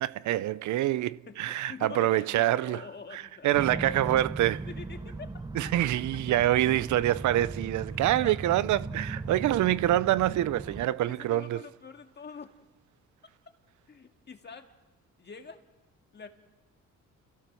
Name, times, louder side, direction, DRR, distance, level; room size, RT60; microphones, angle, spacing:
voice 1, 0.0-2.8 3.1-4.7 5.5-11.6, right 14 dB, 75° right, 0.6 m, -26 dB
voice 2, 1.3-4.0 4.7-5.4 7.9-8.5 10.4-10.6 11.0-12.5 13.9-14.7 15.2-15.6 16.1-16.3, left 5 dB, 35° left, 2.0 m, -45 dB
sound 1, 3.5-10.9, right 3 dB, 15° right, 0.9 m, -38 dB
29.5 x 16.0 x 6.3 m
cardioid pair, 90°, 30 cm